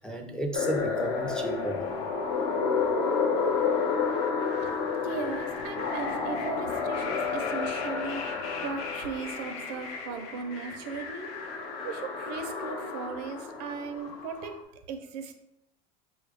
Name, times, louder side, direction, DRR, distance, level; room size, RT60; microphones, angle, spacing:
voice 1, 0.0-2.0, right 1 dB, 5° left, 2 dB, 0.4 m, -33 dB
sound 1, 0.5-14.6, left 5 dB, 65° left, 0.7 m, -31 dB
voice 2, 4.5-11.3 11.8-14.6 14.9-15.3, right 5 dB, 75° right, 7 dB, 0.6 m, -37 dB
4.2 x 2.4 x 3.3 m, 0.82 s
supercardioid pair, 120°, 21 cm